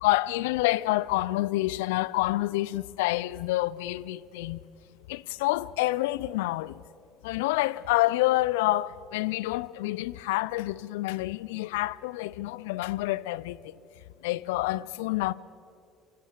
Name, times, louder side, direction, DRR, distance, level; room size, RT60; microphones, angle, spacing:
voice 1, 0.0-4.6 5.1-6.8 7.2-13.7 14.2-15.3, left 17 dB, 80° left, 0.4 m, -28 dB
24.0 x 16.0 x 6.7 m
hypercardioid pair, 65°, 0 cm